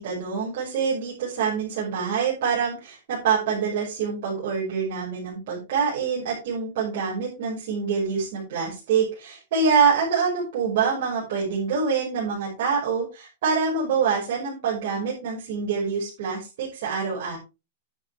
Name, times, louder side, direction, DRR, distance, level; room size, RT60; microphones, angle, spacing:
voice 1, 0.0-17.4, right 6 dB, 45° right, -6 dB, 6.0 m, -25 dB
10.5 x 9.7 x 3.6 m, 0.28 s
supercardioid pair, 175°, 0 cm